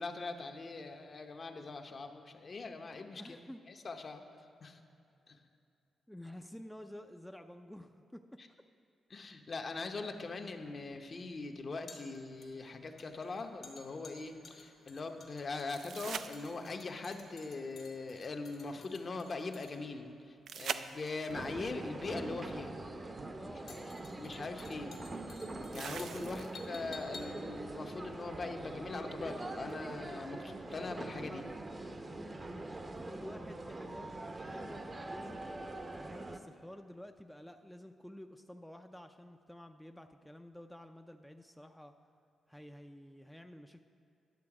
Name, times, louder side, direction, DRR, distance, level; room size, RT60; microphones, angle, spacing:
voice 1, 0.0-3.4 3.7-4.2 4.6-4.8 5.3-5.4 8.4-8.5 9.1-22.8 23.5-23.8 24.2-25.1 25.7-31.5, left 3 dB, 45° left, 5 dB, 0.8 m, -41 dB
voice 2, 2.9-3.6 6.1-8.4 23.4-24.4 26.2-26.5 32.1-34.1 34.4-35.4 35.9-41.9 42.5-43.8, left 1 dB, 5° left, 5 dB, 0.4 m, -51 dB
sound 1, 10.7-29.0 29.3-29.4, left 4 dB, 65° left, 1.5 m, -56 dB
sound 2, 15.7-17.0 20.5-21.4 23.3-23.4 25.7-26.8 29.7-29.8, right 7 dB, 70° right, 0.3 m, -42 dB
sound 3, 21.3-36.4, right 2 dB, 30° right, 0.6 m, -43 dB
10.5 x 6.9 x 4.8 m, 2.7 s
cardioid pair, 65°, 0 cm